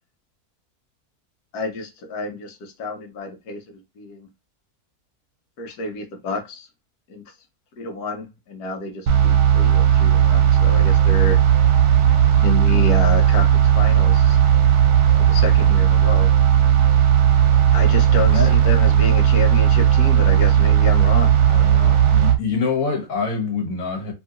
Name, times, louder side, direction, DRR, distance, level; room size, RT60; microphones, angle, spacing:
voice 1, 1.5-3.6 4.0-4.3 5.6-6.7 7.1-7.2 7.8-11.4 12.4-14.4 15.3-16.3 17.7-22.0, left 3 dB, 80° left, 1.4 m, -29 dB
sound 1, 9.1-22.4, right 9 dB, 80° right, 1.2 m, -15 dB
voice 2, 18.2-18.5 22.1-24.1, left 5 dB, 60° left, 1.6 m, -25 dB
3.1 x 2.9 x 2.4 m
omnidirectional pair, 1.7 m